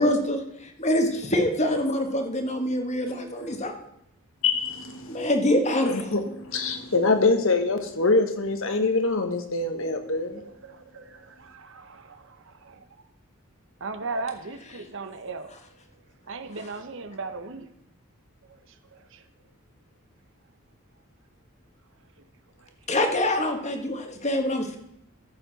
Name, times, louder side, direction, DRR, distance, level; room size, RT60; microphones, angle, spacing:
voice 1, 0.0-0.4 0.8-3.7 5.1-6.1 22.9-24.8, left 1 dB, 30° left, 1.5 m, -25 dB
voice 2, 4.4-5.3 5.8-10.4, left 3 dB, 65° left, 1.4 m, -25 dB
voice 3, 10.4-12.8 13.8-15.5 16.3-17.7 18.5-18.6 18.9-19.2 22.6-22.7, right 3 dB, 60° right, 0.9 m, -37 dB
14.0 x 7.1 x 4.1 m
head